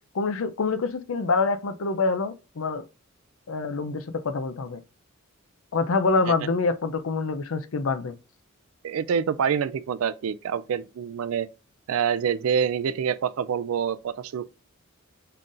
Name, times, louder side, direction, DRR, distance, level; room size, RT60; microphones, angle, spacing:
voice 1, 0.1-2.8 3.5-4.8 5.7-8.2, left 4 dB, 75° left, 0.5 m, -26 dB
voice 2, 8.8-11.5 11.9-14.5, right 7 dB, 85° right, 0.4 m, -26 dB
5.6 x 3.8 x 2.5 m
head